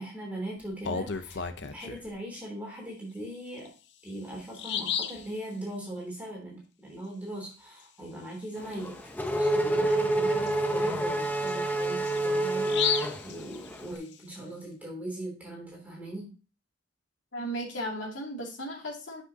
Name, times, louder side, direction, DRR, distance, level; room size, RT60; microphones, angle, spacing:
voice 1, 0.0-3.7 4.0-9.0 9.4-16.3, right 1 dB, 10° right, -3 dB, 3.2 m, -40 dB
Bird vocalization bird call bird song, 0.6-2.1 3.6-3.7 4.1-4.2 4.5-5.3 8.7-8.9 9.3-9.4 9.9-14.1, left 7 dB, 65° left, 0.7 m, -34 dB
Race car auto racing / Accelerating revving vroom, 8.6-13.8, right 1 dB, 10° left, 0.7 m, -28 dB
voice 2, 17.3-19.2, right 1 dB, 80° left, -1 dB, 2.5 m, -35 dB
7.8 x 6.2 x 2.8 m, 0.33 s
head